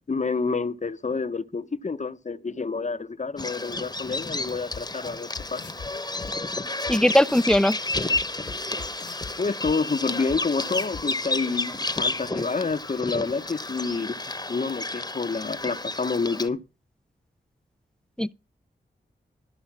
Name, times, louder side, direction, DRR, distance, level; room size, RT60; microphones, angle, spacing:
voice 1, 0.0-5.6 9.4-14.2 14.5-16.6, left 4 dB, 40° left, 1.0 m, -28 dB
Bird vocalization bird call bird song, 3.4-16.5, left 2 dB, 20° left, 1.2 m, -31 dB
sound 1, 4.7-4.8 5.4-5.9 6.2-6.3 6.9-7.0 7.2-7.6 7.9-9.3 9.6-9.7 10.3-10.4 10.7-11.0, left 5 dB, 80° left, 1.5 m, -40 dB
voice 2, 6.9-7.7 18.2-18.3, left 1 dB, 5° left, 0.6 m, -19 dB
13.0 x 5.1 x 7.3 m
cardioid pair, 50°, 18 cm